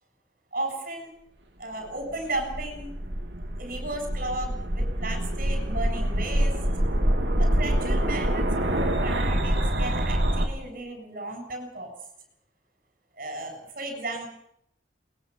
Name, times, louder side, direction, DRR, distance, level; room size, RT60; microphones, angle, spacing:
voice 1, 0.5-1.1 1.6-2.9 3.6-6.6 7.4-11.9 13.1-14.3, right 2 dB, 50° right, 5 dB, 7.5 m, -35 dB
sound 1, 2.1-10.4, right 1 dB, 75° right, 3.4 m, -25 dB
22.0 x 22.0 x 7.0 m, 0.72 s
head